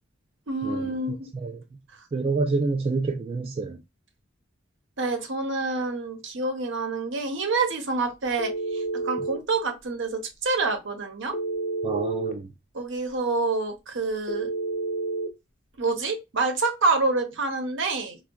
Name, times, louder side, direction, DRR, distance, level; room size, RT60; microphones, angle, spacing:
voice 1, 0.5-1.3 1.9-2.0 5.0-11.4 12.7-14.5 15.8-18.2, right 3 dB, 70° right, 0.8 m, -27 dB
voice 2, 2.1-3.8 11.8-12.5, right 3 dB, 30° right, 0.3 m, -27 dB
Telephone, 8.4-9.4 11.3-12.4 14.3-15.3, right 3 dB, 40° left, 0.4 m, -29 dB
4.4 x 2.2 x 2.2 m
head